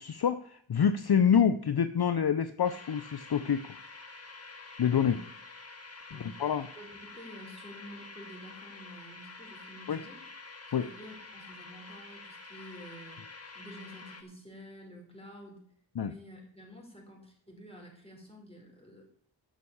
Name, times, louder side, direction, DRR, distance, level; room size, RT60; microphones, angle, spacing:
voice 1, 0.0-3.8 4.8-5.2 6.1-6.7 9.9-10.0 10.7-10.9 16.0-16.1, left 7 dB, 55° left, 12 dB, 0.6 m, -27 dB
sound 1, 2.6-14.2, left 3 dB, 30° left, 2.0 m, -48 dB
voice 2, 6.1-10.2 10.8-15.6 16.0-19.0, equal, 10° left, 0 dB, 4.9 m, -50 dB
9.2 x 6.4 x 8.5 m, 0.63 s
wide cardioid pair, 40°, 47 cm